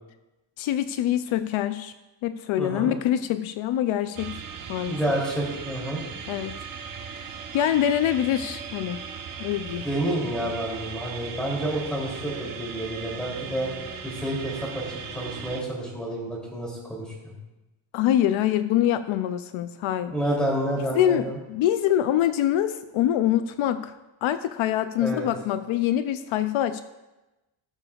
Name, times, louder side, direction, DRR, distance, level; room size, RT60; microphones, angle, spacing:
voice 1, 0.6-1.9 2.2-4.3 4.7-5.0 6.3-6.5 7.5-9.0 9.4-9.9 17.9-20.1 20.9-23.9 24.2-26.8, left 11 dB, 75° left, 11 dB, 0.6 m, -24 dB
voice 2, 2.6-2.9 4.8-6.0 9.8-13.7 14.0-17.3 20.1-21.4 25.0-25.3, right 1 dB, ahead, -4 dB, 3.0 m, -29 dB
sound 1, 4.2-15.6, right 6 dB, 45° right, 1.0 m, -38 dB
18.0 x 6.8 x 2.4 m, 1.0 s
cardioid pair, 160°, 48 cm